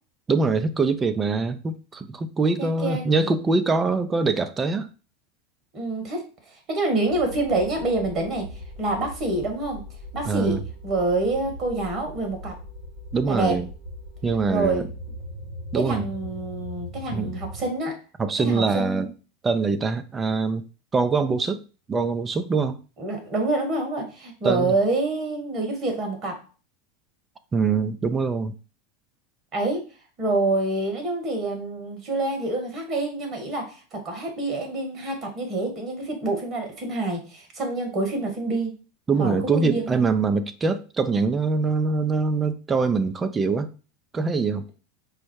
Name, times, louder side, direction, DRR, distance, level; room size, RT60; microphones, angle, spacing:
voice 1, 0.3-4.9 10.2-10.6 13.1-13.7 14.2-14.9 15.7-16.0 17.1-17.3 18.2-19.1 19.4-20.6 20.9-21.6 21.9-22.8 24.4-24.7 27.5-28.5 39.1-43.7 44.1-44.6, right 4 dB, 25° right, 0.5 m, -23 dB
voice 2, 2.6-3.1 5.7-6.2 6.7-8.5 8.8-9.8 10.1-10.6 10.8-12.6 13.3-13.6 14.5-14.8 15.7-18.0 18.4-19.1 23.0-26.4 29.5-29.8 30.2-38.7 39.2-40.0, right 2 dB, 40° right, 1.8 m, -27 dB
sound 1, 7.1-17.7, equal, 80° right, 1.9 m, -39 dB
4.8 x 2.1 x 4.6 m
hypercardioid pair, 90°, 0 cm